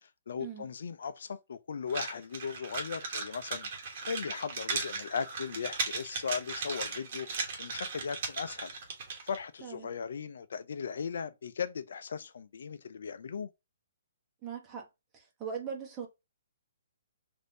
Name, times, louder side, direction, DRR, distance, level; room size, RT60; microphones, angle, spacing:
voice 1, 0.0-3.7 4.1-7.3 7.6-8.7 9.2-13.5, left 6 dB, 70° left, 0.4 m, -37 dB
sound 1, 1.9-9.4, right 4 dB, 50° right, 1.1 m, -37 dB
voice 2, 14.4-14.9 15.1-16.1, right 6 dB, 25° right, 0.9 m, -40 dB
3.3 x 2.6 x 2.6 m
hypercardioid pair, 140°, 0 cm